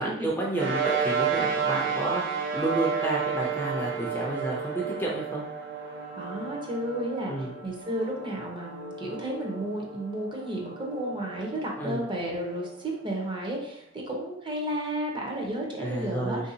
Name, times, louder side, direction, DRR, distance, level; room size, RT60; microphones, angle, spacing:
voice 1, 0.0-5.4 7.2-7.5 11.8-12.0 15.8-16.5, right 2 dB, 10° left, -3 dB, 0.5 m, -30 dB
sound 1, 0.5-13.3, right 6 dB, 85° right, 0.6 m, -32 dB
voice 2, 6.2-7.3 7.6-16.5, right 1 dB, 25° right, -1 dB, 0.7 m, -32 dB
3.5 x 2.6 x 2.7 m, 0.73 s
head